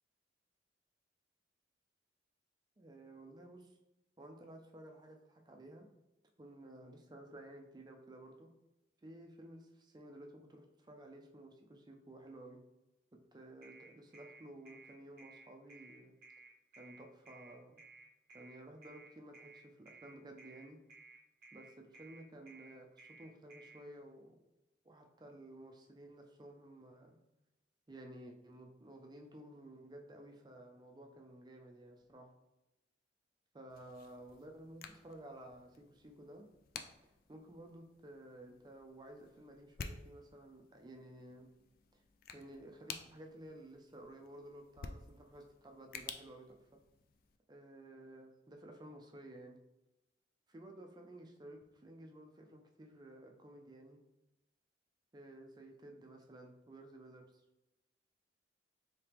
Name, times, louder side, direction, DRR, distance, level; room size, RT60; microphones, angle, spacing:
voice 1, 2.8-3.8 4.2-5.9 6.4-8.5 9.0-12.6 13.1-16.2 16.8-17.9 18.3-20.8 21.5-24.4 24.8-27.2 27.9-32.3 33.5-36.4 36.7-41.5 41.9-42.0 42.3-46.8 47.5-49.6 50.5-54.0 55.1-57.4, right 1 dB, 20° right, 3 dB, 0.4 m, -54 dB
sound 1, 13.6-23.8, right 3 dB, 50° right, 0.8 m, -57 dB
sound 2, 33.7-47.4, left 5 dB, 50° left, 0.3 m, -53 dB
4.5 x 2.9 x 3.4 m, 0.97 s
head